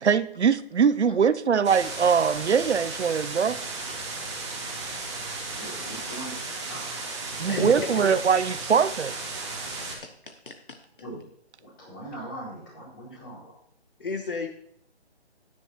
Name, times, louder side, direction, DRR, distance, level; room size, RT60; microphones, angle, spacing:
voice 1, 0.0-3.6 7.4-9.1, right 6 dB, 80° right, 0.7 m, -22 dB
sound 1, 1.6-10.0, right 3 dB, 25° right, 1.9 m, -35 dB
voice 2, 5.6-6.4 6.7-7.1 11.0-11.3 11.6-13.6, right 1 dB, 20° left, 4.1 m, -41 dB
voice 3, 7.2-8.1 9.8-10.8 14.0-14.5, left 4 dB, 50° left, 1.0 m, -34 dB
14.0 x 9.9 x 2.9 m
hypercardioid pair, 170°, 33 cm